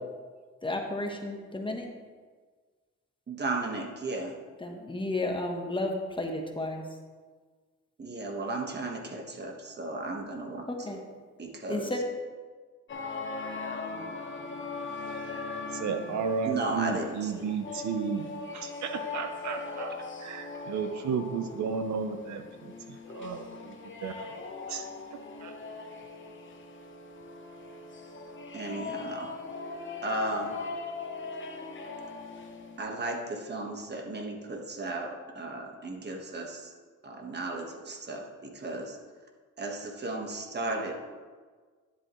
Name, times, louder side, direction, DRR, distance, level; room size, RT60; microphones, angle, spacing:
voice 1, 0.6-1.9 4.6-6.8 10.7-11.0 11.7-12.0, left 2 dB, 15° left, 2 dB, 1.2 m, -32 dB
voice 2, 3.3-4.3 8.0-10.6 11.4-11.9 16.4-17.5 28.5-29.4 30.0-30.6 32.8-36.7 37.0-39.0 39.6-40.9, right 2 dB, 35° right, 2 dB, 1.5 m, -35 dB
sound 1, 12.9-32.8, left 4 dB, 40° left, 1.0 m, -40 dB
voice 3, 15.7-18.3 18.5-19.9 20.2-22.7 23.1-23.7 24.0-24.1 24.7-24.8 25.4-25.5, right 6 dB, 70° right, 6 dB, 0.8 m, -33 dB
10.5 x 7.6 x 3.1 m, 1.5 s
cardioid pair, 90°, 30 cm